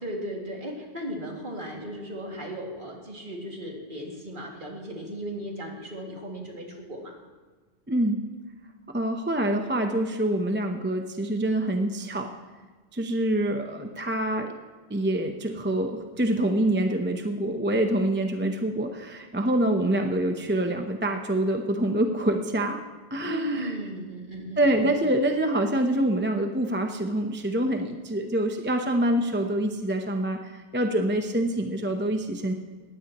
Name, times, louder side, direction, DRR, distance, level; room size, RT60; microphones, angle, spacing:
voice 1, 0.0-7.1 23.2-24.6, equal, 50° right, -1 dB, 2.6 m, -36 dB
voice 2, 7.9-8.2 8.9-12.3 12.9-14.5 14.9-22.8 23.1-23.8 24.6-32.5, right 1 dB, 10° right, 4 dB, 0.8 m, -26 dB
19.5 x 15.5 x 3.0 m, 1.4 s
omnidirectional pair, 1.1 m